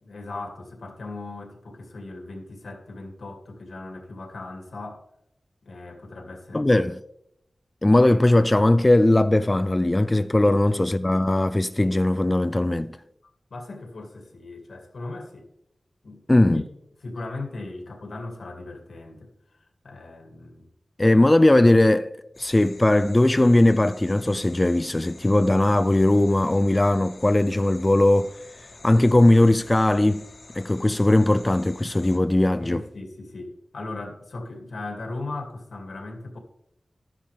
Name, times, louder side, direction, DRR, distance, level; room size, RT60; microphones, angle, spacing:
voice 1, 0.0-5.1 5.6-6.7 10.4-10.8 13.5-15.5 16.0-16.7 17.0-19.3 19.8-20.7 32.6-36.4, left 2 dB, 90° left, 2.3 m, -38 dB
voice 2, 6.5-7.0 7.8-12.9 16.3-16.6 21.0-22.1 22.4-28.3 28.8-30.2 30.5-32.8, left 1 dB, 25° left, 0.4 m, -19 dB
sound 1, 22.3-32.2, left 3 dB, 65° left, 1.4 m, -48 dB
12.5 x 9.9 x 3.4 m
wide cardioid pair, 80°, 0 cm